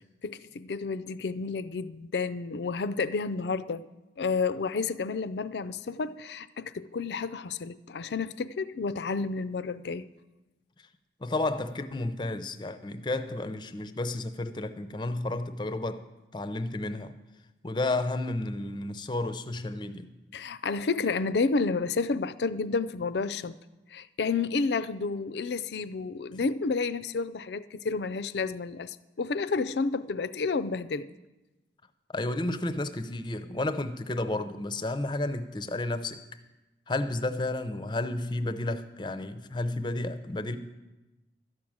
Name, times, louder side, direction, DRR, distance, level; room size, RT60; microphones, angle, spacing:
voice 1, 0.2-3.9 4.2-10.1 20.3-23.6 23.9-31.1, left 4 dB, 75° left, 0.4 m, -30 dB
voice 2, 11.2-16.0 16.3-17.1 17.6-20.1 32.1-36.2 36.9-40.6, left 2 dB, 25° left, 0.5 m, -32 dB
12.5 x 6.2 x 8.7 m
head